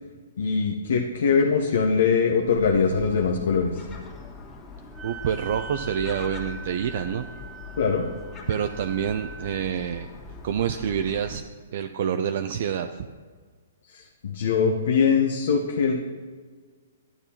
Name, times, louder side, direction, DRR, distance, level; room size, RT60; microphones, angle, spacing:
voice 1, 0.4-3.8 7.8-8.0 13.9-15.9, left 5 dB, 65° left, 1 dB, 0.9 m, -22 dB
Gull seagull, 2.5-11.4, left 4 dB, 25° left, 1.5 m, -42 dB
Wind instrument woodwind instrument, 4.9-9.6, right 4 dB, 15° right, 1.2 m, -42 dB
voice 2, 5.0-7.3 8.5-10.1 10.4-11.4 11.7-13.1, right 8 dB, 55° right, 7 dB, 0.4 m, -27 dB
12.0 x 8.2 x 2.9 m, 1.6 s
hypercardioid pair, 125°, 0 cm